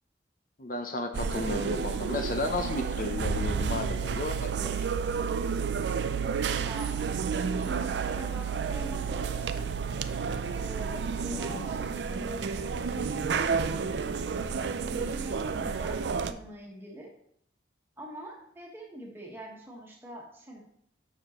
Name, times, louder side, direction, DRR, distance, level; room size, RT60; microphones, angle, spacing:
voice 1, 0.6-4.8 11.3-11.6, left 2 dB, 50° left, 6 dB, 0.6 m, -33 dB
sound 1, 1.1-16.3, right 5 dB, 80° right, 0.4 m, -31 dB
voice 2, 6.5-7.0 7.4-9.7 10.5-13.6 14.5-17.1 18.0-20.6, right 1 dB, 15° right, -2 dB, 1.4 m, -44 dB
7.5 x 6.3 x 3.0 m, 0.71 s
head